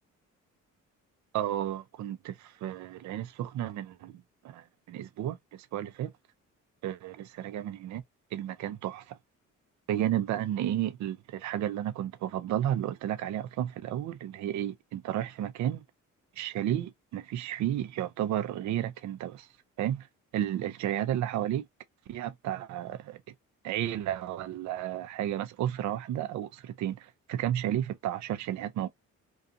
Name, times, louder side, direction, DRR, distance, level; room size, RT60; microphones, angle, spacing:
voice 1, 1.3-6.1 6.8-8.0 8.3-9.2 9.9-15.8 16.4-19.5 19.8-20.1 20.3-21.6 22.1-23.2 23.6-28.9, right 11 dB, 70° right, 0.5 m, -32 dB
2.5 x 2.4 x 2.6 m
cardioid pair, 90°, 30 cm